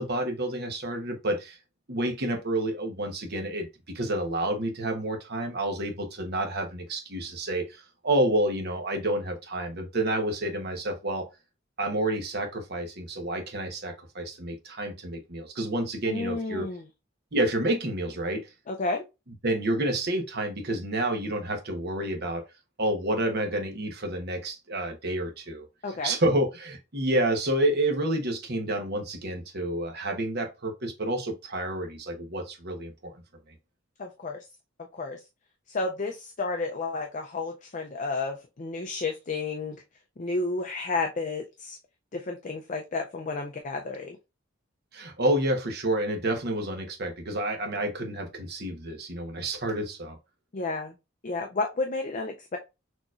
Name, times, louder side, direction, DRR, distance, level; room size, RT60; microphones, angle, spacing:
voice 1, 0.0-1.6 1.9-3.7 3.9-11.3 11.8-16.7 17.3-18.5 19.4-22.4 22.8-33.2 44.9-50.2, right 1 dB, 55° right, 1.1 m, -29 dB
voice 2, 16.1-16.9 18.7-19.0 25.8-26.2 34.0-34.5 34.9-35.2 35.7-39.8 40.2-41.8 42.1-44.2 50.5-50.9 51.2-52.6, left 3 dB, 40° left, 0.5 m, -31 dB
6.3 x 3.0 x 2.5 m
head